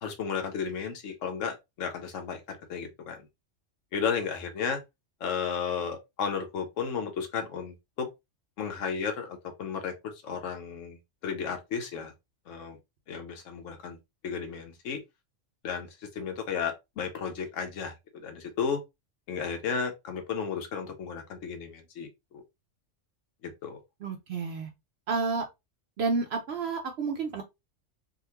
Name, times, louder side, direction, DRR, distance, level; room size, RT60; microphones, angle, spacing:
voice 1, 0.0-3.3 3.9-4.8 5.2-8.1 8.6-11.0 11.2-12.1 12.5-12.8 13.1-14.0 14.2-15.0 15.6-18.8 19.3-22.4 23.4-23.8, left 6 dB, 80° left, 1.1 m, -33 dB
voice 2, 24.0-24.7 25.1-25.4 26.0-27.4, right 4 dB, 65° right, 0.8 m, -30 dB
3.8 x 2.4 x 2.8 m
omnidirectional pair, 1.3 m